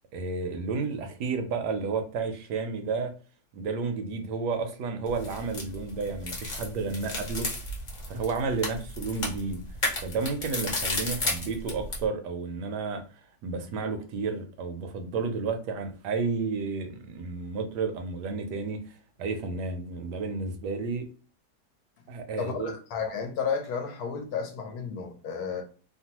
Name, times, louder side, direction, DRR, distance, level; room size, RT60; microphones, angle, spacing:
voice 1, 0.1-3.1 3.5-7.5 8.1-9.6 10.0-21.0 22.1-22.7, right 4 dB, 75° right, 1.1 m, -31 dB
sound 1, 5.1-12.1, left 2 dB, 40° left, 0.7 m, -33 dB
voice 2, 22.4-25.6, left 6 dB, 70° left, 1.0 m, -32 dB
2.9 x 2.2 x 2.8 m
omnidirectional pair, 1.8 m